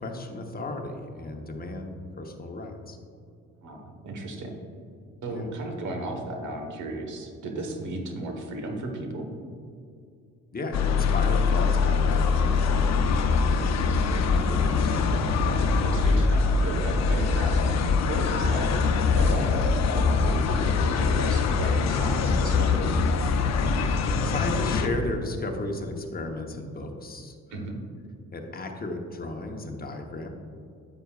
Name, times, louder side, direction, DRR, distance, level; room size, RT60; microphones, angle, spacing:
voice 1, 0.0-3.0 5.3-5.5 10.5-13.1 13.4-14.9 19.3-19.5 24.2-27.6 28.3-30.3, left 2 dB, 30° left, 3 dB, 1.0 m, -35 dB
voice 2, 3.6-4.6 5.2-9.3 15.4-18.8 19.1-23.0 27.5-27.8, right 2 dB, 75° right, 3 dB, 1.4 m, -35 dB
sound 1, 10.7-24.9, left 4 dB, 60° left, 0.7 m, -23 dB
9.8 x 8.0 x 2.4 m, 2.4 s
cardioid pair, 90°, 30 cm